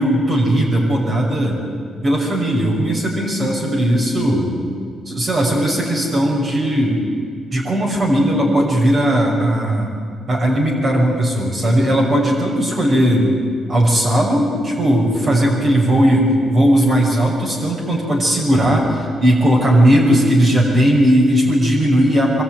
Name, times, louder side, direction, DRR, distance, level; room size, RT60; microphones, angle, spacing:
voice 1, 0.0-1.6 2.0-4.5 5.0-7.0 7.5-9.9 10.3-13.3 13.7-22.4, equal, 45° right, -2 dB, 6.1 m, -17 dB
24.5 x 22.0 x 9.4 m, 2.1 s
cardioid pair, 90°, 0 cm